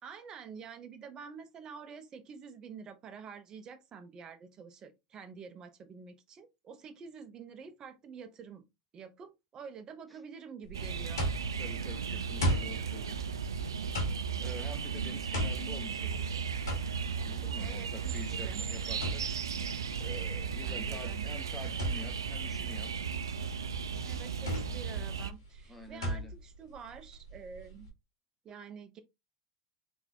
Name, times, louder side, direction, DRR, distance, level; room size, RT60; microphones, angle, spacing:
voice 1, 0.0-8.6 8.9-11.3 17.6-18.6 20.6-21.3 24.0-27.9 28.4-29.0, right 6 dB, 35° right, 1.0 m, -48 dB
sound 1, 10.6-27.9, equal, 80° left, 1.7 m, -38 dB
sound 2, 10.7-25.3, right 6 dB, 85° right, 0.4 m, -36 dB
voice 2, 11.3-13.3 14.4-16.4 17.2-19.7 20.0-22.9 25.7-26.3, left 1 dB, ahead, 1.2 m, -48 dB
3.9 x 3.5 x 2.9 m
hypercardioid pair, 85°, 2 cm